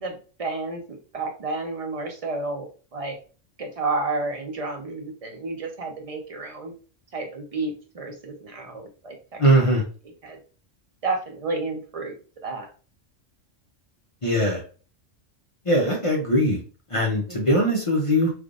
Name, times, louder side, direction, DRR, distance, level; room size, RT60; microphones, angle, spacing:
voice 1, 0.0-3.2 3.6-6.7 7.1-9.2 10.2-10.4 11.0-12.1 12.4-12.7 17.3-17.4, right 3 dB, 40° right, 3 dB, 0.6 m, -31 dB
voice 2, 9.4-9.8 14.2-14.6 15.7-16.6 16.9-18.3, equal, 35° left, -1 dB, 0.6 m, -20 dB
3.4 x 2.5 x 2.4 m, 0.37 s
omnidirectional pair, 1.3 m